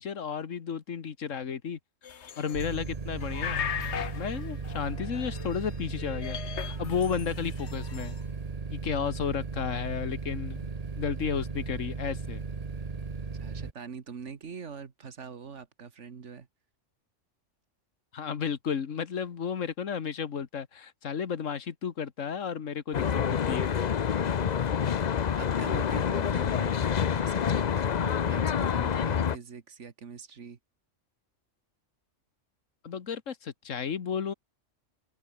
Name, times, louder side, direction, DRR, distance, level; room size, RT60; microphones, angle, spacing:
voice 1, 0.0-1.8 2.4-3.6 4.1-8.2 8.7-10.7 11.0-12.4 18.1-23.8 32.8-34.3, left 7 dB, 80° left, 1.7 m, -33 dB
sound 1, 2.0-2.8 3.1-5.7 6.0-8.1, left 8 dB, 65° left, 1.3 m, -38 dB
sound 2, 2.5-13.7, right 4 dB, 30° right, 1.2 m, -36 dB
voice 2, 13.3-16.5 24.2-25.1 25.4-26.8 27.1-30.6, right 6 dB, 70° right, 1.8 m, -44 dB
Traffic noise roadway noise, 22.9-29.4, left 7 dB, 45° left, 0.6 m, -27 dB
open air
omnidirectional pair, 1.3 m